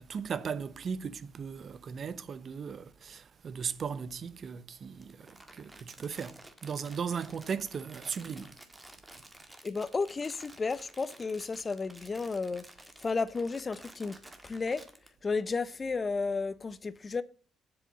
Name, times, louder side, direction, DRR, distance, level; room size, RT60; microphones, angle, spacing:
voice 1, 0.0-8.5 9.1-9.2, right 6 dB, 45° right, 0.8 m, -37 dB
Crumpling crinkling, 5.0-15.1, right 1 dB, 15° right, 1.8 m, -53 dB
voice 2, 9.6-12.6 13.0-14.9 15.2-17.2, left 4 dB, 30° left, 0.7 m, -33 dB
7.9 x 7.1 x 5.3 m
cardioid pair, 100°, 0 cm